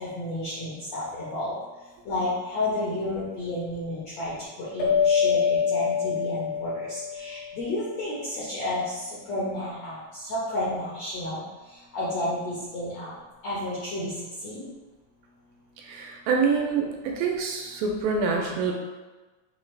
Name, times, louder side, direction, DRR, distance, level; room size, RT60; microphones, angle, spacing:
voice 1, 0.0-1.5 2.1-4.3 4.6-8.8 9.3-10.0 10.3-11.4 11.9-13.1 13.4-14.1 14.4-14.6, left 1 dB, 75° left, -9 dB, 1.5 m, -31 dB
sound 1, 4.8-7.8, left 7 dB, 90° left, 2.9 m, -25 dB
voice 2, 15.8-16.9 17.2-18.7, right 5 dB, 80° right, 0 dB, 2.2 m, -26 dB
5.9 x 2.4 x 3.1 m, 1.2 s
omnidirectional pair, 4.2 m